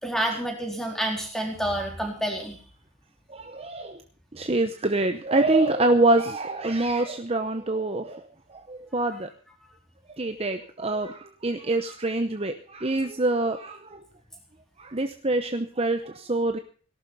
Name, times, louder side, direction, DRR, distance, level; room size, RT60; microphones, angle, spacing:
voice 1, 0.0-2.6, right 1 dB, ahead, 2 dB, 4.0 m, -29 dB
voice 2, 3.3-4.0 4.3-8.2 8.5-9.3 10.2-14.0 14.8-16.6, right 2 dB, 25° right, 7 dB, 0.9 m, -25 dB
18.0 x 12.0 x 5.7 m, 0.43 s
head